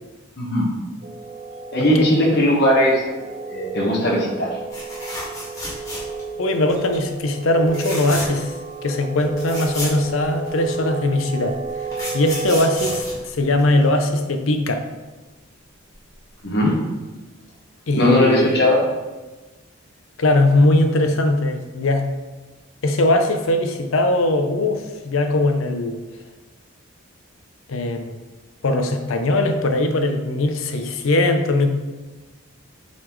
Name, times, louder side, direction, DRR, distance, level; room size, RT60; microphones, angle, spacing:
voice 1, 0.4-0.7 1.7-3.0 3.5-4.5 16.4-16.7 17.9-18.8, left 1 dB, 50° left, -3 dB, 1.3 m, -18 dB
sound 1, 1.0-13.0, right 4 dB, 35° right, 0.4 m, -33 dB
sound 2, 4.7-6.3 6.7-7.0 7.7-8.5 8.9-9.0 9.2-10.7 11.5-14.0 15.9-16.1 16.4-16.5, left 1 dB, 15° left, 1.7 m, -32 dB
voice 2, 6.4-8.5 8.8-11.6 12.1-14.8 17.9-18.6 20.2-22.0 22.8-26.0 27.7-28.2 28.6-31.7, left 2 dB, 70° left, 6 dB, 0.6 m, -20 dB
7.5 x 4.1 x 3.1 m, 1.2 s
head